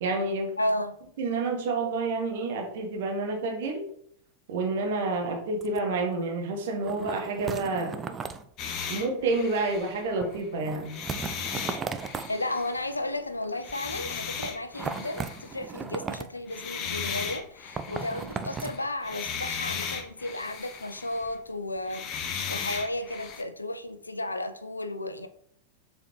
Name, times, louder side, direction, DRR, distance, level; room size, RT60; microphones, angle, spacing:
voice 1, 0.0-0.5 1.2-3.8 4.5-8.0 8.9-11.0, right 3 dB, 55° right, 1.3 m, -29 dB
voice 2, 0.6-1.0 12.3-25.3, left 1 dB, 80° left, 0.5 m, -33 dB
sound 1, 5.3-5.4 5.6-5.8 6.1-6.2 6.8-8.4 10.2-12.3 13.4-13.7 14.4-16.4 17.8-18.8 19.1-19.2, right 5 dB, 20° right, 0.5 m, -36 dB
sound 2, 8.6-10.4 10.8-13.0 13.6-15.6 16.5-21.4 21.8-23.4, left 6 dB, 35° left, 0.9 m, -36 dB
6.9 x 4.3 x 3.1 m
figure-of-eight pair, 90°, 0 cm